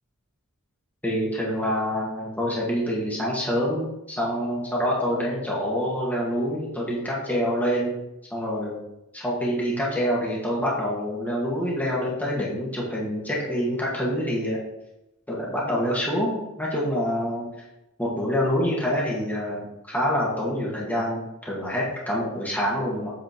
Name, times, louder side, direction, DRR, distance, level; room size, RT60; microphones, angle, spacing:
voice 1, 1.0-8.0 8.3-8.8 9.1-14.6 15.3-17.5 18.0-23.1, equal, 5° left, -5 dB, 1.7 m, -26 dB
8.2 x 4.2 x 4.5 m, 0.90 s
head